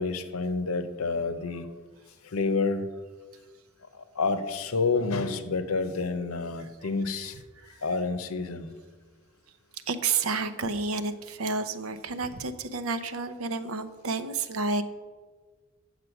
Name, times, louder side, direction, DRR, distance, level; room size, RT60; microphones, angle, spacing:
voice 1, 0.0-1.7 2.2-2.9 3.9-7.4 7.8-8.7, left 4 dB, 80° left, 10 dB, 0.8 m, -29 dB
voice 2, 9.9-14.8, right 4 dB, 70° right, 11 dB, 0.7 m, -30 dB
8.2 x 7.4 x 6.0 m, 1.5 s
head